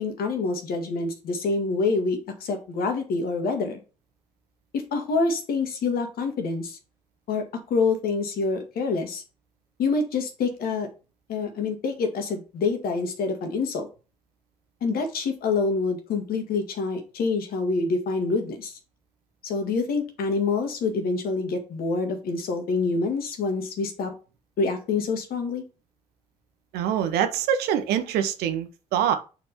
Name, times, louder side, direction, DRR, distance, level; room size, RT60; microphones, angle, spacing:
voice 1, 0.0-3.8 4.9-6.8 7.3-7.4 7.7-9.2 9.8-10.9 11.3-13.9 14.8-18.7 19.4-24.1 24.6-25.6, left 4 dB, 55° left, 1.8 m, -26 dB
voice 2, 26.7-29.1, right 9 dB, 65° right, 0.9 m, -24 dB
6.1 x 4.5 x 4.2 m
figure-of-eight pair, 45°, 18 cm